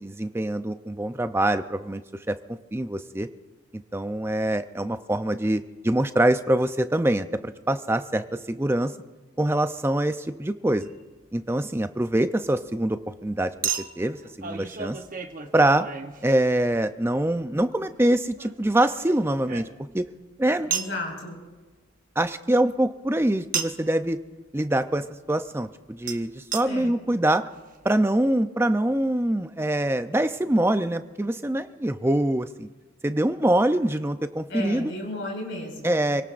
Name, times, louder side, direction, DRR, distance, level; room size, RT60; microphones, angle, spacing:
voice 1, 0.0-2.0 2.3-2.4 2.7-3.3 3.9-8.9 9.4-10.9 11.3-13.5 14.0-15.0 15.5-15.9 16.2-19.7 19.9-20.1 20.4-20.7 22.2-24.2 24.5-27.5 27.8-32.7 33.0-34.9 35.8-36.2, right 1 dB, 10° right, 10 dB, 0.5 m, -24 dB
Chink clink, 10.8-11.0 13.6-16.8 18.4-20.1 20.7-21.0 23.5-23.9 26.1-26.2 26.5-26.6 27.3-27.4 27.6-27.7, right 7 dB, 40° right, 0.9 m, -33 dB
voice 2, 20.7-21.4 26.6-26.9 34.5-36.0, left 1 dB, 65° left, -1 dB, 5.4 m, -34 dB
27.5 x 18.0 x 2.5 m, 1.3 s
head